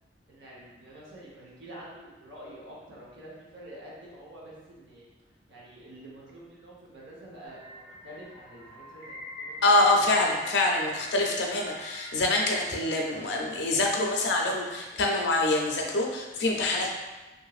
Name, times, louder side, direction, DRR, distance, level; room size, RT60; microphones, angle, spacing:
voice 1, 0.3-5.0 5.5-10.3, right 1 dB, 85° right, -5 dB, 0.9 m, -47 dB
sound 1, 7.5-13.2, right 1 dB, 35° right, 0.5 m, -43 dB
voice 2, 9.6-17.0, left 2 dB, 80° left, 0 dB, 0.5 m, -25 dB
2.9 x 2.6 x 2.4 m, 1.1 s
head